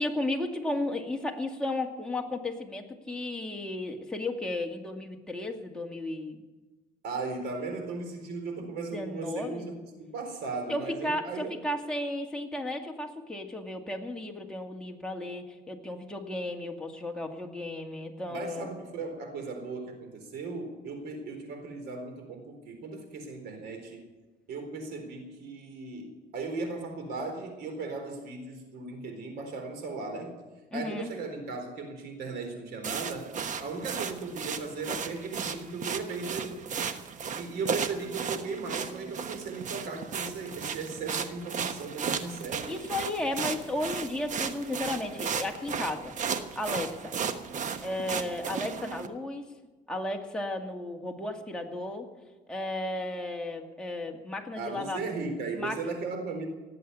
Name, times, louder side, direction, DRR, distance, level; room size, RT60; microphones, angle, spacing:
voice 1, 0.0-6.4 8.9-9.7 10.7-18.7 30.7-31.1 42.7-46.1 46.6-47.1 47.8-49.5 49.9-52.1 52.5-55.0 55.5-55.8, left 1 dB, 5° left, 1 dB, 2.2 m, -34 dB
voice 2, 7.0-9.7 10.0-11.6 18.3-24.0 24.5-30.3 30.7-33.3 33.6-36.6 37.3-42.8 54.6-56.5, right 3 dB, 75° right, 5 dB, 4.1 m, -37 dB
sound 1, 32.8-49.1, right 6 dB, 45° right, 1.2 m, -35 dB
18.5 x 7.9 x 10.0 m, 1.2 s
cardioid pair, 110°, 17 cm